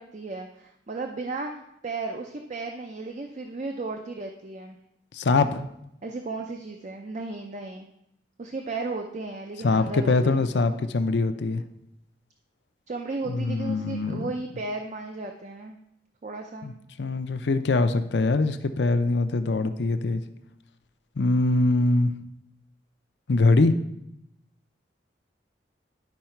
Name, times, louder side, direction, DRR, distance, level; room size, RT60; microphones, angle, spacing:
voice 1, 0.0-4.8 6.0-7.9 8.4-10.5 12.9-15.8 16.2-16.7, right 3 dB, 40° right, 3 dB, 0.5 m, -35 dB
voice 2, 5.1-5.6 9.6-11.6 13.3-14.3 16.6-16.7 17.0-20.2 21.2-22.1 23.3-23.7, left 3 dB, 70° left, 9 dB, 0.6 m, -23 dB
10.5 x 4.7 x 4.4 m, 0.81 s
head